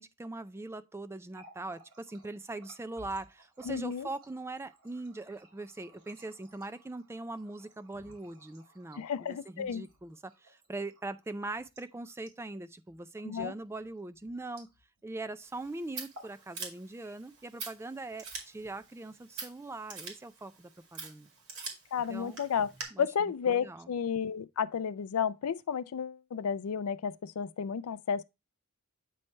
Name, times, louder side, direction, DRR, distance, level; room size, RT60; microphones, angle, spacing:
voice 1, 0.0-14.7 15.0-21.3 22.1-22.4 22.9-23.1 23.5-23.9, right 2 dB, 10° right, 0.3 m, -41 dB
Water tap faucet, 1.2-15.2 15.5-15.7 16.0-16.4 16.8-17.4 18.1-18.8, equal, 90° right, 3.2 m, -58 dB
voice 2, 3.6-4.1 8.9-9.8 13.2-13.5 21.9-22.7 23.0-28.2, left 7 dB, 75° left, 0.4 m, -32 dB
Scissors, 15.4-22.8, right 4 dB, 65° right, 2.3 m, -45 dB
8.5 x 3.2 x 4.3 m
head